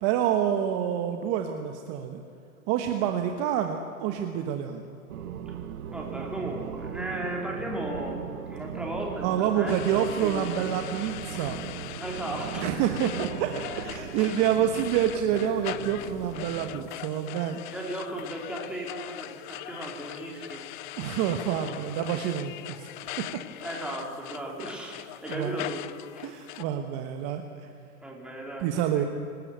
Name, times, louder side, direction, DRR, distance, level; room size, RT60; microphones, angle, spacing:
voice 1, 0.0-2.2 2.7-4.8 9.2-11.6 12.5-17.6 21.0-22.9 23.2-23.4 25.3-25.7 26.2-27.7 28.6-29.0, right 9 dB, 35° right, 5 dB, 1.3 m, -28 dB
sound 1, 5.1-16.9, right 9 dB, 85° right, 1.2 m, -38 dB
voice 2, 5.9-10.6 12.0-12.8 14.0-14.5 14.7-14.8 17.7-20.6 23.6-25.8 26.1-26.5 28.0-29.1, right 1 dB, ahead, -1 dB, 3.5 m, -36 dB
sound 2, 9.7-26.6, left 16 dB, 35° left, 0.5 m, -41 dB
23.0 x 13.0 x 9.3 m, 2.5 s
hypercardioid pair, 140°, 43 cm